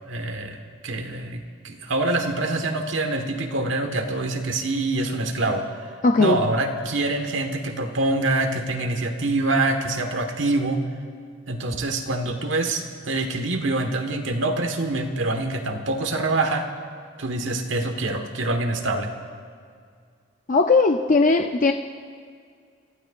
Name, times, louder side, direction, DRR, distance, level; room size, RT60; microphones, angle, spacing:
voice 1, 0.1-0.6 0.8-5.6 6.2-10.8 11.5-16.7 17.2-19.1, right 2 dB, 80° right, 4 dB, 1.4 m, -25 dB
voice 2, 6.0-6.4 20.5-21.7, left 3 dB, 45° left, 4 dB, 0.5 m, -18 dB
28.0 x 15.0 x 2.5 m, 2.1 s
head